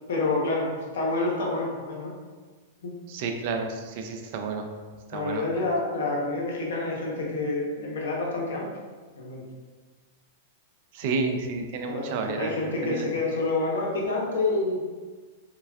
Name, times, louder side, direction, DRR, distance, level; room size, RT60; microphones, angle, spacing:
voice 1, 0.1-2.1 2.8-3.0 5.1-8.7 9.2-9.4 11.0-11.3 11.9-14.9, left 2 dB, 80° left, -2 dB, 0.7 m, -28 dB
voice 2, 3.1-4.7 5.1-5.4 10.9-12.5 12.8-13.1, right 4 dB, 55° right, 4 dB, 0.3 m, -30 dB
3.4 x 2.2 x 2.2 m, 1.4 s
hypercardioid pair, 135°, 0 cm